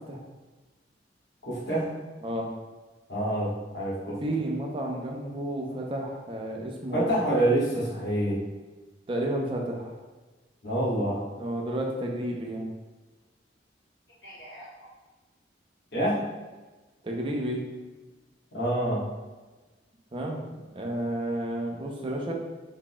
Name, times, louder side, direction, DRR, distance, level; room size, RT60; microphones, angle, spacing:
voice 1, 1.4-2.0 3.1-4.2 6.9-8.4 10.6-11.3 14.2-14.7 15.9-16.3 18.5-19.1, right 1 dB, 65° left, -7 dB, 1.3 m, -27 dB
voice 2, 4.2-7.1 9.1-9.9 11.4-12.7 17.0-17.6 20.1-20.4 20.7-22.3, right 1 dB, 30° right, 0 dB, 0.5 m, -31 dB
3.9 x 3.6 x 2.2 m, 1.2 s
head